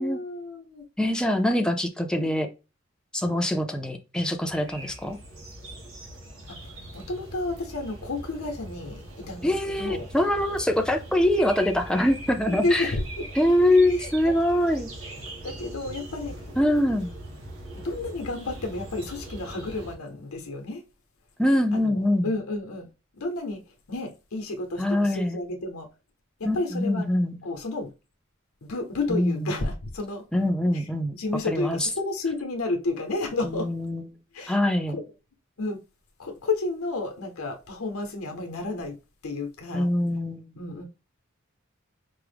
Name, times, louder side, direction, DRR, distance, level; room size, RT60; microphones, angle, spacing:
voice 1, 0.0-0.8 1.6-1.7 2.2-2.3 6.5-6.6 6.9-10.1 12.5-13.2 14.0-14.3 15.4-16.4 17.8-20.8 21.7-22.9 23.1-23.6 23.9-25.9 26.4-27.1 27.4-27.9 28.6-30.2 30.7-30.8 31.1-33.7 34.3-34.6 34.9-35.0 35.6-35.8 36.2-39.0 39.2-39.9 40.6-40.8, left 2 dB, 85° left, 0.8 m, -31 dB
voice 2, 1.0-2.5 3.1-5.2 9.4-12.9 13.4-14.9 16.6-17.1 21.4-22.3 24.8-25.4 26.4-27.4 29.1-29.5 30.3-31.1 31.5-31.9 33.4-34.1 34.5-34.9 39.7-40.5, left 1 dB, 5° left, 0.4 m, -24 dB
sound 1, 4.4-19.9, right 1 dB, 80° right, 1.2 m, -41 dB
4.6 x 2.0 x 3.3 m
head